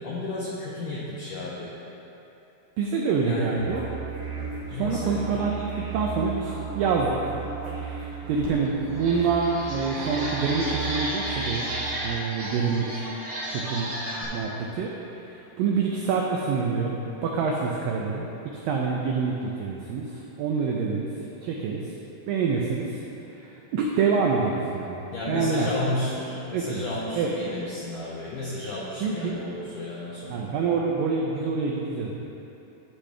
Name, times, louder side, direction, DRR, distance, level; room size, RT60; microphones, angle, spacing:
voice 1, 0.0-1.7 3.2-3.7 4.7-5.2 25.1-30.5, left 2 dB, 90° left, -6 dB, 1.8 m, -33 dB
voice 2, 2.8-3.9 4.7-7.3 7.7-11.7 12.0-13.1 13.5-13.9 14.3-18.3 18.6-21.1 21.4-21.9 22.3-23.0 23.3-25.7 26.5-26.8 27.2-27.3 29.0-29.4 30.3-32.2, right 5 dB, 90° right, -1 dB, 2.0 m, -27 dB
sound 1, 3.6-11.9, right 6 dB, 65° right, 2.3 m, -36 dB
sound 2, 8.4-8.5 8.9-14.2, right 1 dB, 45° right, 2.7 m, -33 dB
11.5 x 6.2 x 3.3 m, 3.0 s
omnidirectional pair, 4.8 m